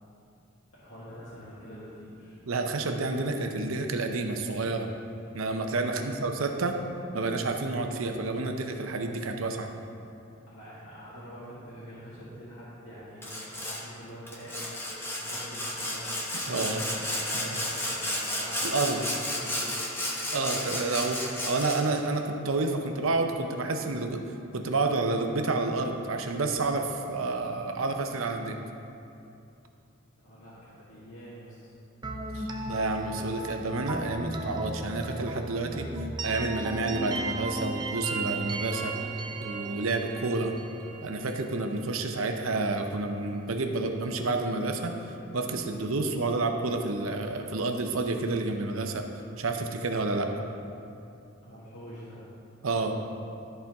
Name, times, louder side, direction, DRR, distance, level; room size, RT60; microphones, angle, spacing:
voice 1, 0.7-2.3 5.8-6.1 10.4-13.4 13.7-14.7 15.0-19.8 30.2-31.7 51.4-52.2, equal, 80° left, -11 dB, 1.8 m, -45 dB
voice 2, 2.5-4.9 5.3-6.7 7.1-9.7 16.5-16.8 18.6-19.0 20.3-24.2 24.5-28.6 32.3-35.9 36.2-38.9 39.4-40.5 41.0-44.9 45.3-49.0 49.4-50.3 52.6-52.9, right 3 dB, 75° right, 4 dB, 0.7 m, -29 dB
Sawing, 13.2-13.8 14.3-22.0, left 1 dB, 10° left, 0.9 m, -32 dB
sound 1, 32.0-41.8, right 2 dB, 20° right, 0.5 m, -35 dB
13.0 x 4.4 x 3.5 m, 2.7 s
head